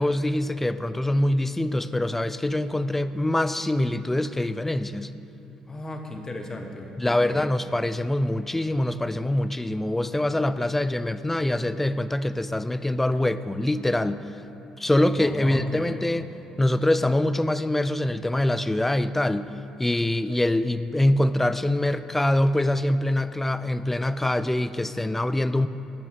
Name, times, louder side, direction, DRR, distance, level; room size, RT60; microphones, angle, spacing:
voice 1, 0.0-5.1 7.0-14.2 14.8-16.3 16.6-19.5 19.8-25.7, left 1 dB, 10° left, 14 dB, 0.3 m, -24 dB
voice 2, 5.7-7.4 15.2-15.9, left 2 dB, 25° left, 4 dB, 1.1 m, -35 dB
10.5 x 6.1 x 5.5 m, 3.0 s
supercardioid pair, 75°, 2 cm